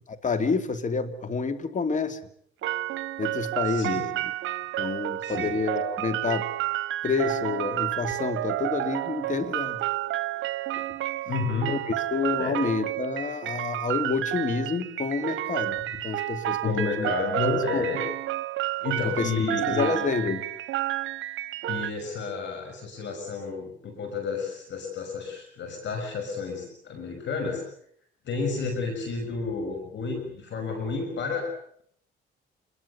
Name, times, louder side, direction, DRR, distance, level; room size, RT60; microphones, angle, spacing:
voice 1, 0.1-2.2 3.2-4.2 4.8-6.5 7.0-9.8 10.8-10.9 11.7-17.1 17.4-17.9 19.0-20.5, left 4 dB, 40° left, 9 dB, 2.8 m, -29 dB
sound 1, 2.6-21.9, right 15 dB, 80° right, 1.0 m, -30 dB
voice 2, 3.7-4.0 5.2-5.6 11.3-11.8 12.4-12.6 16.6-18.0 18.8-20.0 21.7-27.6 28.2-31.5, left 4 dB, 65° left, 4 dB, 6.5 m, -31 dB
27.0 x 22.5 x 7.1 m, 0.64 s
cardioid pair, 90°, 20 cm